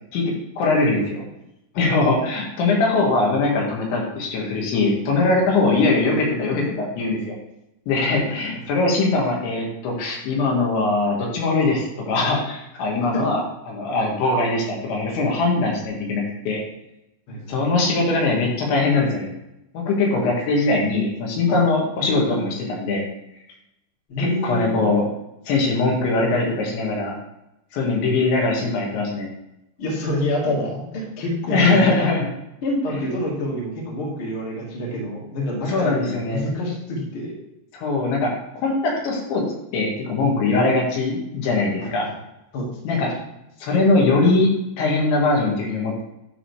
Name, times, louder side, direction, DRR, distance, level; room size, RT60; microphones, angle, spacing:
voice 1, 0.1-1.2 1.8-7.3 7.9-13.4 13.7-16.6 17.5-19.3 19.7-23.0 24.2-25.1 25.5-27.2 27.7-29.3 31.5-32.3 35.7-36.5 37.7-39.4 39.7-42.1 42.9-43.1 43.6-44.5 44.8-46.0, left 3 dB, 75° left, -2 dB, 3.9 m, -21 dB
voice 2, 8.0-8.4 17.3-17.6 21.5-21.6 24.1-24.8 29.8-32.0 32.6-37.3 41.8-42.1 42.5-43.0, left 1 dB, 40° left, -4 dB, 2.1 m, -27 dB
11.0 x 3.8 x 4.7 m, 0.87 s
omnidirectional pair, 5.3 m